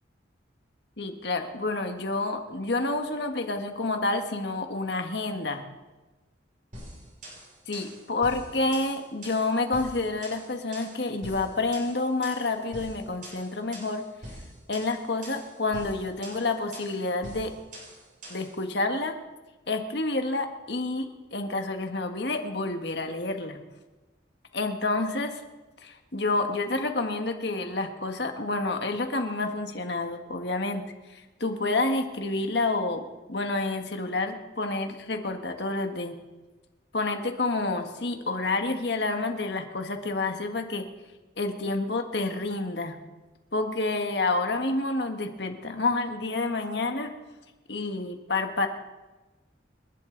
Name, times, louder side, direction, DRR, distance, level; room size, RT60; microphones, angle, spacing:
voice 1, 1.0-5.6 7.7-14.0 14.7-17.5 18.3-19.1 19.7-23.6 24.5-25.3 25.8-30.9 31.1-33.0 33.3-36.1 36.9-40.9 41.4-43.0 43.5-47.1 47.7-48.7, left 3 dB, 60° left, 5 dB, 1.6 m, -29 dB
sound 1, 6.7-18.6, right 1 dB, 45° right, 6.9 m, -44 dB
29.0 x 11.0 x 4.0 m, 1.2 s
head